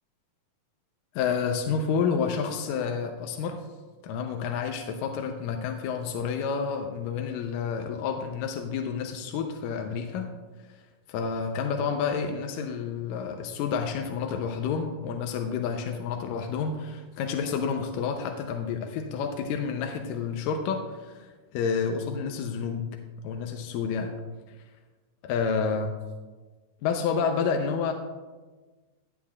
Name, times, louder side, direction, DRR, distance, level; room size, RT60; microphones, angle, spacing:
voice 1, 1.2-3.6 4.0-10.3 11.1-22.9 23.2-24.1 25.2-26.0 26.8-27.9, left 6 dB, 85° left, 4 dB, 2.3 m, -29 dB
17.0 x 7.5 x 2.4 m, 1.3 s
omnidirectional pair, 3.9 m